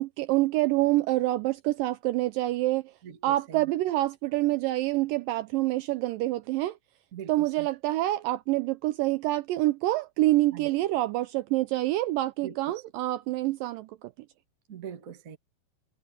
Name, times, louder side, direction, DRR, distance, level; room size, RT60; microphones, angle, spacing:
voice 1, 0.0-2.9 3.2-6.8 7.3-14.1, right 17 dB, 80° right, 2.0 m, -27 dB
voice 2, 3.0-3.7 7.1-7.7 10.5-10.7 12.4-12.8 14.7-15.4, right 8 dB, 50° right, 1.0 m, -42 dB
omnidirectional pair, 4.4 m